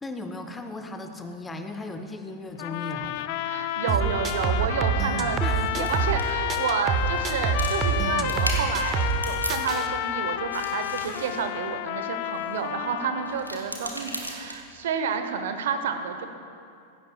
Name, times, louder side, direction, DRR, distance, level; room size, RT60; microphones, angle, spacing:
voice 1, 0.0-3.3 4.0-4.2 5.4-6.1, left 2 dB, 10° left, 6 dB, 0.8 m, -36 dB
sound 1, 2.6-13.6, left 13 dB, 50° left, 0.4 m, -31 dB
voice 2, 3.4-16.3, right 6 dB, 60° right, 8 dB, 0.9 m, -30 dB
sound 2, 3.9-6.2 6.5-9.2 9.5-9.9, right 6 dB, 30° right, 0.8 m, -26 dB
sound 3, 5.7-10.1 10.3-12.6 13.2-14.9, equal, 90° right, 1.3 m, -38 dB
15.5 x 15.5 x 2.3 m, 2.5 s
figure-of-eight pair, 90°, 0 cm